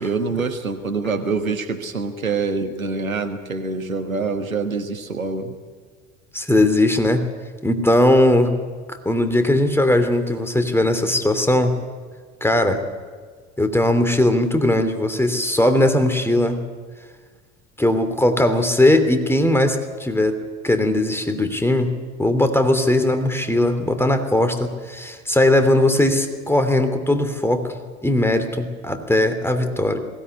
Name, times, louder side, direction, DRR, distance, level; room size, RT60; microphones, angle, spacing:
voice 1, 0.0-5.6, right 4 dB, 85° right, 7 dB, 1.4 m, -25 dB
voice 2, 6.3-7.2 7.6-8.5 8.9-11.7 12.4-12.8 13.6-16.6 17.8-20.4 20.6-21.9 22.2-27.7 28.0-30.0, left 1 dB, 5° left, 8 dB, 3.0 m, -19 dB
21.0 x 17.0 x 10.0 m, 1.5 s
figure-of-eight pair, 60°, 40 cm